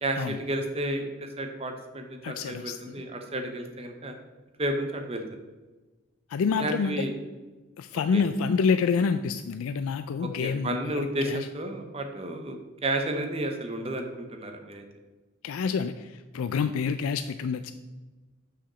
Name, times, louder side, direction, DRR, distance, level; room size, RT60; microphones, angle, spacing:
voice 1, 0.0-4.2 4.6-5.4 6.6-7.1 7.9-8.2 10.2-14.8, right 1 dB, 30° right, 5 dB, 0.8 m, -32 dB
voice 2, 2.2-3.0 6.3-7.1 7.8-11.5 15.4-17.7, left 5 dB, 85° left, 10 dB, 0.4 m, -28 dB
5.9 x 4.9 x 6.7 m, 1.2 s
head